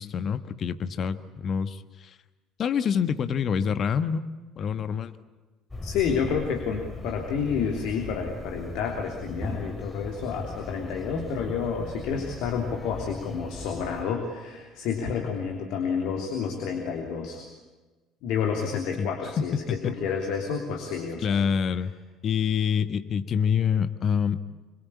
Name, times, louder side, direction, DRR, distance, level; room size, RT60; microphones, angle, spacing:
voice 1, 0.0-2.1 2.6-4.2 4.6-5.1 19.0-19.1 19.4-19.9 21.2-21.9 22.2-24.4, left 7 dB, 40° left, 12 dB, 1.4 m, -26 dB
sound 1, 5.7-14.0, left 2 dB, 10° left, 3.0 m, -38 dB
voice 2, 5.8-17.5 18.2-21.4, left 6 dB, 55° left, 2 dB, 3.3 m, -30 dB
26.5 x 24.5 x 8.6 m, 1.2 s
figure-of-eight pair, 60°, 0 cm